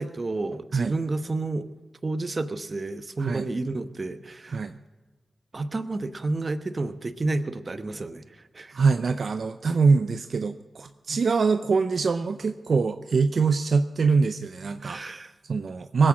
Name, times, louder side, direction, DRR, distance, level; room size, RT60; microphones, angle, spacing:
voice 1, 0.0-1.7 2.0-4.6 5.5-8.8 14.8-15.3, right 2 dB, 45° right, 11 dB, 1.1 m, -30 dB
voice 2, 8.7-15.0 15.5-16.1, right 4 dB, 70° right, 9 dB, 0.6 m, -23 dB
20.0 x 8.8 x 6.2 m, 1.3 s
cardioid pair, 55°, 0 cm